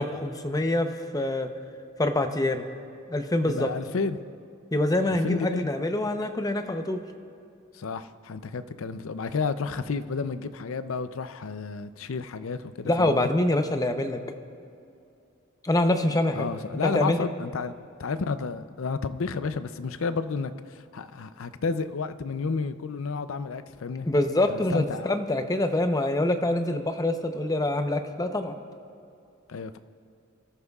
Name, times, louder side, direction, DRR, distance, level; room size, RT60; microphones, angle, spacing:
voice 1, 0.0-1.5 2.0-2.6 3.1-3.7 4.7-7.0 12.9-14.2 15.6-16.5 16.8-17.2 24.0-28.5, left 1 dB, 20° left, 0.7 m, -25 dB
voice 2, 3.4-4.2 5.2-5.7 7.7-13.3 16.3-17.7 18.0-24.1 24.5-25.2 29.5-29.8, left 4 dB, 70° left, 0.5 m, -31 dB
26.0 x 13.5 x 2.4 m
head